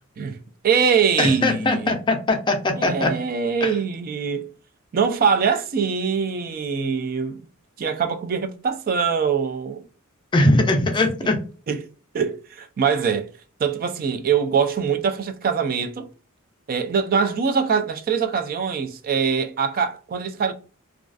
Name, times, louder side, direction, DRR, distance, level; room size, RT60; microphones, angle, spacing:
voice 1, 0.6-2.0 2.8-4.5 4.9-7.5 7.8-9.8 11.2-11.3 11.7-11.8 12.1-13.3 13.6-16.1 16.7-20.5, right 6 dB, 45° right, 0.3 m, -23 dB
voice 2, 1.2-3.1 3.6-3.7 10.3-11.4, left 2 dB, 20° left, 0.4 m, -20 dB
2.3 x 2.3 x 2.4 m
head